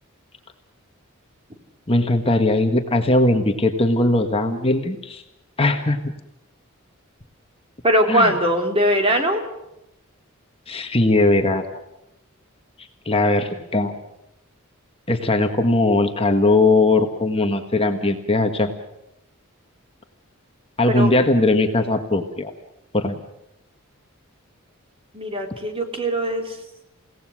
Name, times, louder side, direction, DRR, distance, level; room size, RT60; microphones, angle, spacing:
voice 1, 1.9-5.2 5.6-6.0 8.1-8.3 10.7-11.7 13.0-13.9 15.1-18.7 20.8-22.5 22.9-23.2, left 2 dB, 25° left, 5 dB, 1.6 m, -19 dB
voice 2, 7.8-9.4 20.9-21.1 25.1-26.6, equal, 25° right, 4 dB, 3.3 m, -20 dB
29.5 x 17.5 x 6.3 m, 0.87 s
head